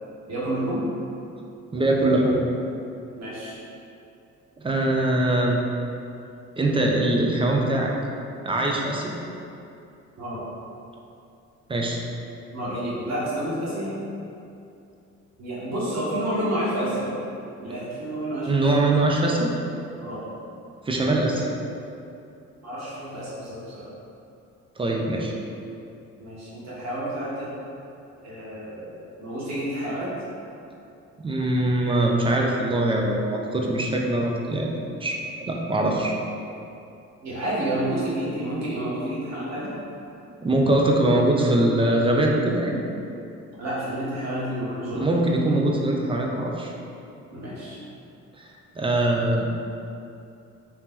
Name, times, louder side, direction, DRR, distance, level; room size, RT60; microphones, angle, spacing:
voice 1, 0.3-0.9 3.1-3.6 10.2-10.4 12.5-14.0 15.4-17.2 17.6-18.6 20.0-20.3 22.6-23.9 26.2-27.5 28.2-30.1 37.2-39.7 43.6-45.0 47.3-47.8, right 1 dB, 60° right, -8 dB, 1.3 m, -29 dB
voice 2, 1.7-2.4 4.6-5.6 6.6-7.9 8.4-9.1 11.7-12.0 18.5-19.5 20.8-21.5 24.8-25.3 31.2-36.1 40.4-42.8 45.0-46.7 48.4-48.5 48.8-49.5, right 1 dB, 20° right, -1 dB, 0.5 m, -22 dB
2.9 x 2.9 x 3.6 m, 2.7 s
cardioid pair, 90°, 30 cm